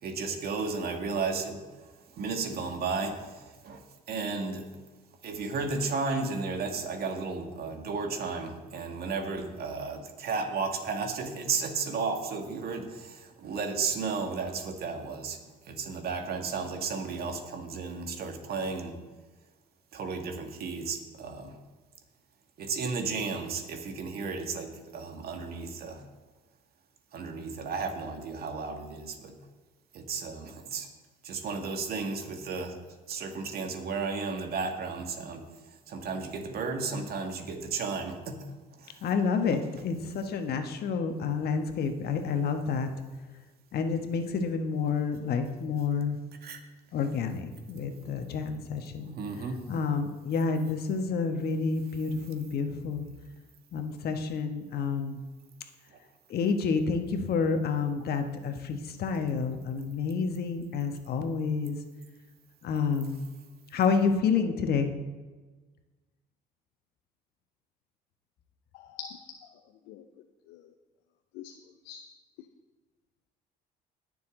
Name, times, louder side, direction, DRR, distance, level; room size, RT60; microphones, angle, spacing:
voice 1, 0.0-3.8 4.1-4.7 5.2-15.4 15.7-19.0 19.9-21.5 22.6-26.0 27.1-29.3 29.9-30.9 31.2-32.8 33.1-35.4 35.9-38.4 38.8-39.0 39.5-39.6 46.4-46.6 49.1-49.6 55.9-56.0, right 4 dB, 60° right, 4 dB, 2.0 m, -33 dB
voice 2, 39.0-42.9 43.7-46.2 46.9-49.2 49.7-53.1 53.7-55.2 56.3-61.8 62.6-63.2 63.7-64.9, left 5 dB, 60° left, 6 dB, 1.4 m, -29 dB
voice 3, 68.7-69.5 69.9-70.0 70.5-70.7 71.3-71.5 71.8-72.0, left 8 dB, 80° left, 7 dB, 0.7 m, -44 dB
20.5 x 6.9 x 3.9 m, 1.3 s
supercardioid pair, 75°, 18 cm